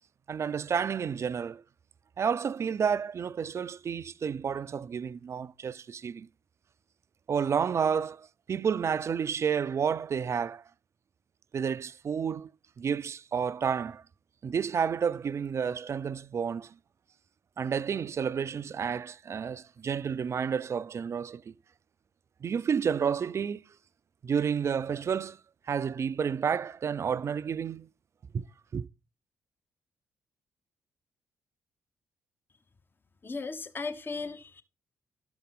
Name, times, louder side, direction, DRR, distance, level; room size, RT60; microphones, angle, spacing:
voice 1, 0.3-1.6 2.2-6.3 7.3-10.6 11.5-12.5 12.8-14.0 14.4-16.7 17.6-21.5 22.4-23.6 24.2-25.4 25.7-27.9 28.3-28.5 28.7-28.8, right 7 dB, 40° right, 0.4 m, -30 dB
voice 2, 33.2-34.6, left 4 dB, 30° left, 0.8 m, -36 dB
11.5 x 6.8 x 3.7 m
hypercardioid pair, 40°, 7 cm